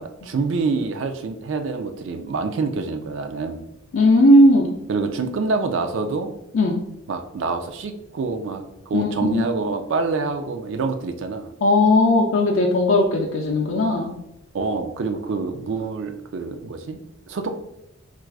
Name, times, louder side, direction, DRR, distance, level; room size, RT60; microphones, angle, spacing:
voice 1, 0.0-3.6 4.9-6.3 7.1-11.5 14.5-17.0 17.3-17.6, right 4 dB, 65° right, 7 dB, 0.4 m, -26 dB
voice 2, 3.9-4.7 6.5-6.8 8.9-9.5 11.6-14.1, left 1 dB, 75° left, -1 dB, 0.4 m, -17 dB
4.5 x 2.4 x 2.3 m, 0.83 s
head